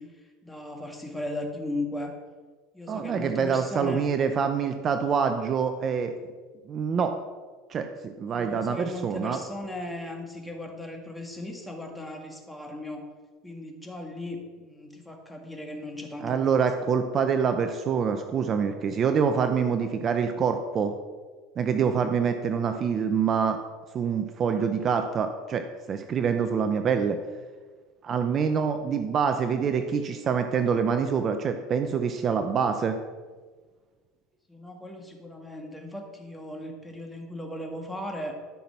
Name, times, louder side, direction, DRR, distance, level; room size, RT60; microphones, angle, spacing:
voice 1, 0.0-2.1 2.7-4.0 8.3-13.1 13.4-16.6 21.9-22.1 34.5-38.4, left 1 dB, 5° left, 2 dB, 2.0 m, -37 dB
voice 2, 2.9-6.2 6.7-7.1 7.7-9.4 16.2-20.9 21.6-23.6 23.9-27.2 28.0-33.0, right 6 dB, 35° right, 7 dB, 0.7 m, -26 dB
12.5 x 5.9 x 5.9 m, 1.5 s
supercardioid pair, 120°, 0 cm